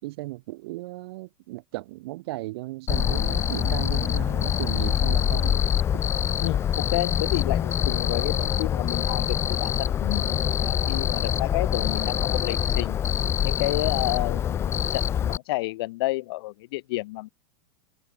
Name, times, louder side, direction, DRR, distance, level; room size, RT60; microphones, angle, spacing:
voice 1, 0.0-5.6 5.9-6.0, right 20 dB, 50° right, 5.2 m, -36 dB
Cricket, 2.9-15.4, left 9 dB, 15° left, 0.9 m, -25 dB
voice 2, 6.4-13.0 13.4-17.3, left 20 dB, 50° left, 6.7 m, -30 dB
supercardioid pair, 175°, 17 cm